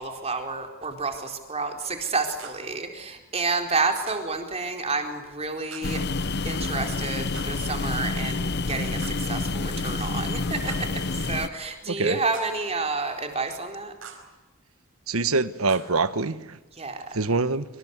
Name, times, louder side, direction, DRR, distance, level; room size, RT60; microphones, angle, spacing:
voice 1, 0.0-6.0 6.4-13.9 16.7-17.1, right 3 dB, 30° right, 4 dB, 4.2 m, -30 dB
We are the world - handclap, 2.4-2.8 4.1-4.4 5.7-6.0 7.3-7.7 9.0-9.4 10.7-11.1 12.3-12.7 14.0-14.4 15.7-15.9, right 6 dB, 65° right, 4.8 m, -44 dB
sound 1, 5.8-11.5, left 3 dB, 50° left, 0.9 m, -28 dB
voice 2, 15.1-16.6 17.1-17.6, right 3 dB, 80° right, 14 dB, 1.4 m, -24 dB
26.5 x 26.0 x 8.2 m, 1.1 s
head